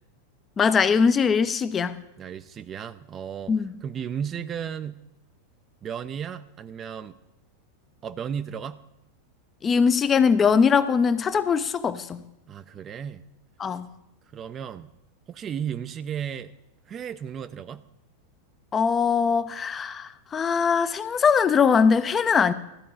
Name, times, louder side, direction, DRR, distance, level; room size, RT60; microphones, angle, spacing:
voice 1, 0.6-2.0 3.5-3.7 9.6-12.2 13.6-13.9 18.7-22.5, left 6 dB, 20° left, 0.5 m, -21 dB
voice 2, 2.2-3.5 3.8-5.0 5.8-7.2 8.0-8.8 12.5-13.2 14.3-14.9 15.3-16.5 16.9-17.8, right 8 dB, 25° right, 0.5 m, -34 dB
13.0 x 4.6 x 8.6 m
figure-of-eight pair, 90°, 0 cm